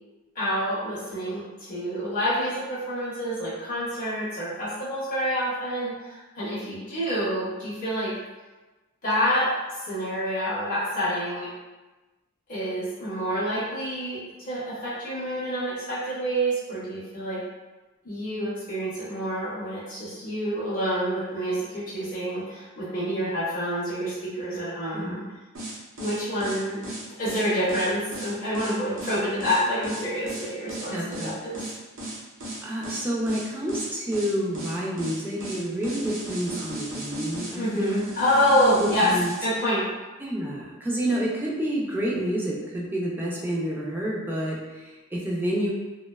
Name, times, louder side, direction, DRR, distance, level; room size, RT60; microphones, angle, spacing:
voice 1, 0.4-8.1 9.0-9.5 9.9-11.5 12.5-14.2 14.5-17.4 18.0-25.2 26.0-26.8 27.2-31.6 37.5-39.1 39.4-39.9, equal, 40° left, -9 dB, 0.6 m, -27 dB
sound 1, 25.5-39.4, right 1 dB, 75° right, 0.7 m, -36 dB
voice 2, 30.9-31.4 32.6-38.1 38.8-39.3 40.2-45.7, right 1 dB, 10° right, -5 dB, 0.4 m, -29 dB
2.6 x 2.1 x 2.2 m, 1.2 s
head